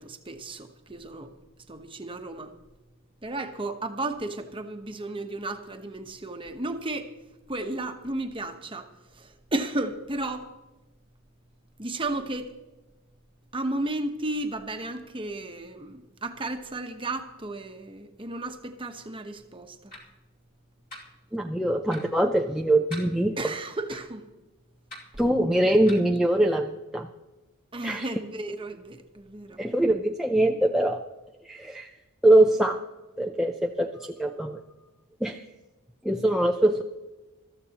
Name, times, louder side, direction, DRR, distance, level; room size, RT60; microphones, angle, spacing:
voice 1, 0.0-1.3 1.7-2.5 3.2-7.1 7.5-8.9 9.1-10.5 11.8-12.5 13.5-19.9 23.4-24.3 27.7-29.6, right 2 dB, 25° right, 6 dB, 1.1 m, -33 dB
sound 1, 19.9-20.0 20.9-21.0 21.9-22.0 22.9-23.1 23.9-24.0 24.9-25.0 25.9-26.0, equal, 40° left, 2.9 m, -41 dB
voice 2, 21.3-23.4 25.2-27.1 27.8-28.1 29.6-31.0 31.4-31.9 32.2-32.8 33.2-34.6 35.2-35.4 36.0-36.8, right 1 dB, ahead, 2 dB, 0.5 m, -23 dB
21.0 x 13.5 x 3.0 m, 1.1 s
head